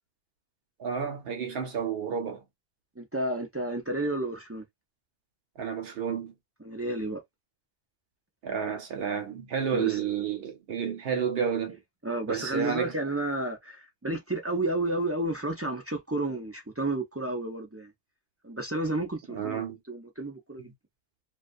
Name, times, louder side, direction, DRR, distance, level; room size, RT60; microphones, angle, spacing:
voice 1, 0.8-2.4 5.6-6.3 8.4-11.8 12.3-13.0 19.3-19.8, right 7 dB, 70° right, 0.9 m, -31 dB
voice 2, 3.0-4.6 6.6-7.2 9.7-10.0 12.0-17.9 18.4-19.6 19.9-20.7, right 2 dB, 20° right, 0.4 m, -31 dB
2.3 x 2.3 x 2.5 m
omnidirectional pair, 1.0 m